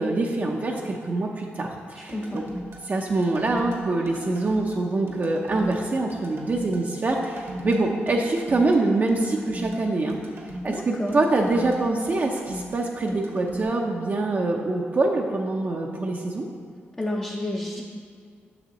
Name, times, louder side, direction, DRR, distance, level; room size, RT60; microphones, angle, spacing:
voice 1, 0.0-2.4 2.8-10.2 10.6-16.5, right 2 dB, 40° right, 0 dB, 0.6 m, -25 dB
voice 2, 2.1-2.4 10.7-11.2 17.0-17.8, left 1 dB, 15° left, -1 dB, 0.6 m, -30 dB
sound 1, 2.1-13.6, equal, 65° right, 1.1 m, -38 dB
6.9 x 6.0 x 3.0 m, 2.2 s
cardioid pair, 65°, 5 cm